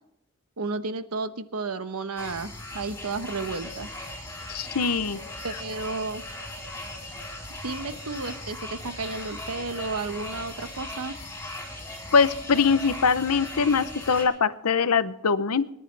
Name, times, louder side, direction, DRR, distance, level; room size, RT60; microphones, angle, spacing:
voice 1, 0.6-3.9 5.4-6.2 7.5-11.1, right 3 dB, 85° right, 11 dB, 1.0 m, -32 dB
sound 1, 2.2-14.2, left 1 dB, 10° left, 4.5 m, -38 dB
voice 2, 4.5-5.2 12.1-15.7, left 5 dB, 85° left, 14 dB, 0.8 m, -22 dB
26.0 x 11.0 x 3.4 m, 0.84 s
head